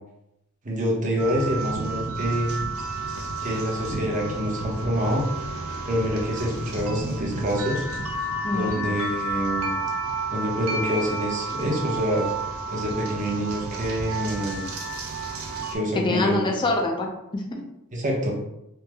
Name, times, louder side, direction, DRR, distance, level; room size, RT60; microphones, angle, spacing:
voice 1, 0.6-2.5 3.4-5.3 5.9-7.8 8.5-9.7 10.3-12.3 12.7-14.7 15.7-16.4 17.9-18.4, equal, 35° right, -2 dB, 0.7 m, -26 dB
sound 1, 1.2-15.8, right 2 dB, 70° right, 0.5 m, -31 dB
voice 2, 8.4-8.8 15.9-17.6, left 2 dB, 20° left, 2 dB, 0.4 m, -25 dB
3.1 x 2.0 x 3.3 m, 0.85 s
head